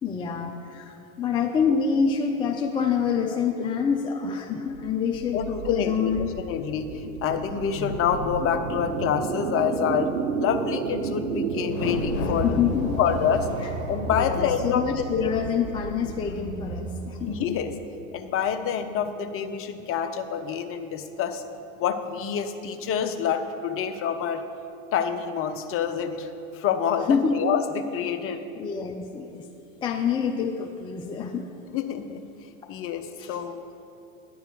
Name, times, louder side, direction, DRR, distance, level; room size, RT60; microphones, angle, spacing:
voice 1, 0.0-6.3 7.0-7.2 12.4-13.0 14.2-17.3 19.7-19.8 27.1-27.5 28.3-29.4 29.8-31.4 33.2-33.4, left 6 dB, 15° left, 2 dB, 0.3 m, -27 dB
sound 1, 4.7-17.9, right 5 dB, 85° right, 0.7 m, -33 dB
voice 2, 5.3-10.1 10.4-12.7 13.0-13.5 13.9-14.9 15.1-15.3 17.3-17.7 18.1-21.4 21.8-24.4 24.9-28.4 31.7-32.2 32.7-33.6, left 7 dB, 30° left, 8 dB, 0.7 m, -27 dB
sound 2, 11.6-18.2 18.6-18.7, left 7 dB, 75° left, 0.8 m, -36 dB
10.0 x 4.6 x 7.6 m, 2.7 s
hypercardioid pair, 95°, 42 cm